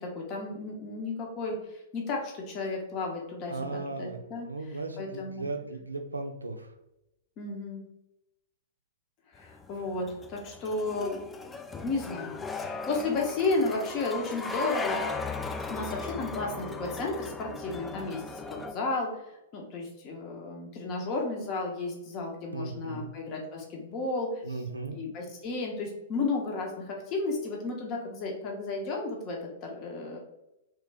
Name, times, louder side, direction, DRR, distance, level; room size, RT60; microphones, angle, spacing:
voice 1, 0.0-4.5 5.0-5.5 7.4-7.8 9.3-11.5 11.8-15.0 15.7-19.1 19.5-24.6 24.9-30.2, left 3 dB, 35° left, 0 dB, 0.7 m, -33 dB
voice 2, 3.5-6.7 22.5-23.1 24.4-25.0, right 3 dB, 85° right, 5 dB, 0.4 m, -37 dB
sound 1, 9.4-18.7, left 4 dB, 10° left, 0.3 m, -37 dB
3.1 x 2.3 x 3.4 m, 0.89 s
figure-of-eight pair, 105°, 0 cm